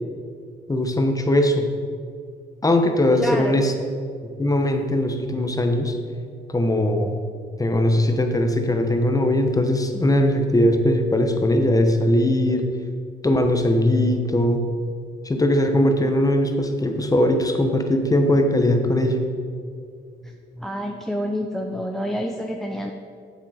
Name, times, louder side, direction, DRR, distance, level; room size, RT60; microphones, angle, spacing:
voice 1, 0.7-1.7 2.6-3.7 4.4-6.0 6.5-7.2 7.6-12.7 13.2-14.6 15.2-19.2, left 1 dB, 15° left, 5 dB, 1.0 m, -20 dB
voice 2, 3.2-3.6 20.2-22.9, equal, ahead, 3 dB, 0.5 m, -28 dB
7.4 x 7.3 x 5.0 m, 2.3 s
cardioid pair, 90°, 20 cm